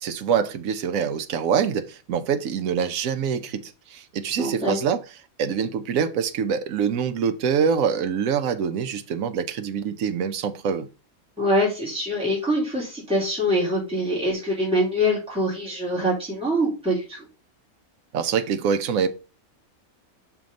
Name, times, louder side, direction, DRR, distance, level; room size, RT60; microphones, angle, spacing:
voice 1, 0.0-5.0 5.4-10.9 18.1-19.1, right 7 dB, 75° right, 1.1 m, -25 dB
voice 2, 4.4-4.8 11.4-17.3, equal, 5° right, 2.6 m, -24 dB
6.2 x 3.5 x 5.1 m
omnidirectional pair, 1.5 m